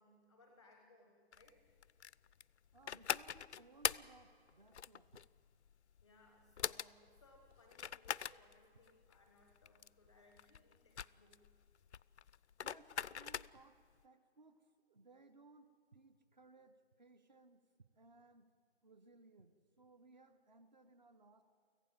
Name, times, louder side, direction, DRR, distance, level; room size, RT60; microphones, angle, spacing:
voice 1, 0.0-1.6 6.0-11.4, left 2 dB, 5° left, 3 dB, 0.7 m, -67 dB
sound 1, 1.3-13.8, left 8 dB, 80° left, 0.5 m, -43 dB
voice 2, 2.7-5.2 12.6-18.5 18.8-21.4, right 3 dB, 40° right, 11 dB, 1.0 m, -63 dB
24.5 x 15.5 x 7.4 m, 2.3 s
figure-of-eight pair, 170°, 34 cm